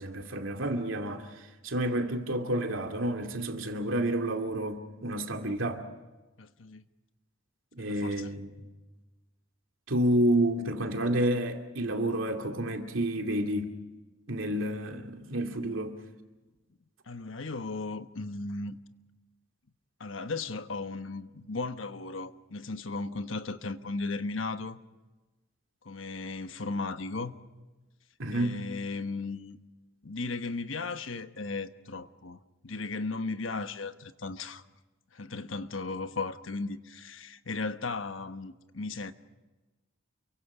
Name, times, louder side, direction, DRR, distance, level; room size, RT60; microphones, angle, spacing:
voice 1, 0.0-5.8 7.7-8.5 9.9-13.8 14.3-16.0 28.2-28.6, right 1 dB, 85° right, 2.5 m, -30 dB
voice 2, 6.4-6.8 7.8-8.3 17.1-18.8 20.0-24.8 25.8-27.3 28.3-29.6 30.0-34.6 35.1-39.1, left 3 dB, 80° left, 1.2 m, -36 dB
29.0 x 23.5 x 5.0 m
head